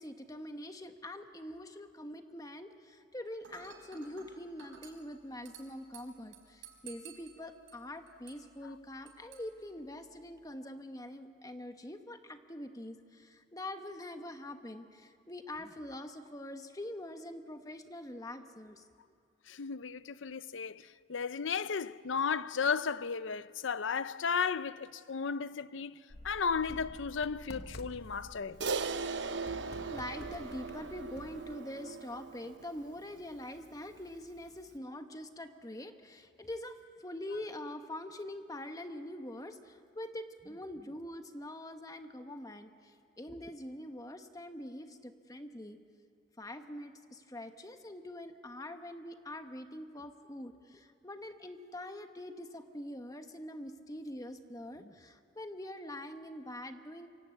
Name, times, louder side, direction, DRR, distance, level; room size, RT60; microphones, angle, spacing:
voice 1, 0.0-18.8 29.9-45.8 46.4-57.1, left 1 dB, 20° left, 1.2 m, -44 dB
Dishes pots and pans / Glass, 3.4-10.4, right 7 dB, 85° right, 4.9 m, -56 dB
voice 2, 19.5-26.0 26.2-28.6, left 6 dB, 75° left, 0.6 m, -34 dB
sound 1, 26.1-31.6, left 1 dB, 55° left, 1.1 m, -50 dB
Crash cymbal, 28.6-33.2, right 4 dB, 65° right, 0.9 m, -38 dB
26.5 x 24.5 x 8.3 m
head